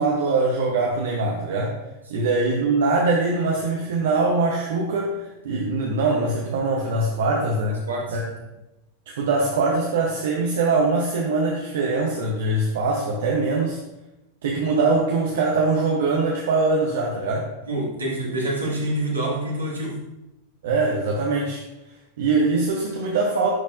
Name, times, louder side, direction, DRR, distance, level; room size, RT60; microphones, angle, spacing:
voice 1, 0.0-1.8 2.1-7.8 8.1-8.2 9.1-13.8 14.4-17.5 20.6-21.6 22.2-23.5, right 3 dB, 60° right, -1 dB, 0.8 m, -22 dB
voice 2, 7.8-8.2 17.7-20.0, right 1 dB, 75° right, -4 dB, 1.8 m, -27 dB
10.5 x 4.3 x 2.5 m, 0.96 s
figure-of-eight pair, 90°, 0 cm